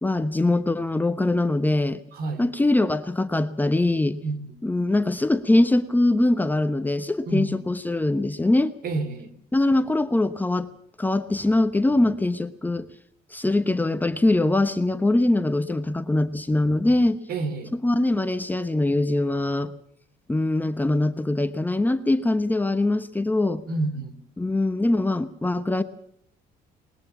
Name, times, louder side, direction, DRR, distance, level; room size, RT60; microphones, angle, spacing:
voice 1, 0.0-2.0 2.4-4.2 4.6-8.7 9.5-10.7 11.0-12.9 13.3-17.2 17.7-19.7 20.3-23.6 24.4-25.8, left 2 dB, 10° left, 9 dB, 1.0 m, -22 dB
voice 2, 2.1-2.4 4.2-4.4 7.2-7.5 8.8-9.3 17.3-17.7 23.7-24.2, right 3 dB, 60° right, 12 dB, 3.1 m, -28 dB
20.0 x 20.0 x 7.1 m, 0.68 s
cardioid pair, 110°, 17 cm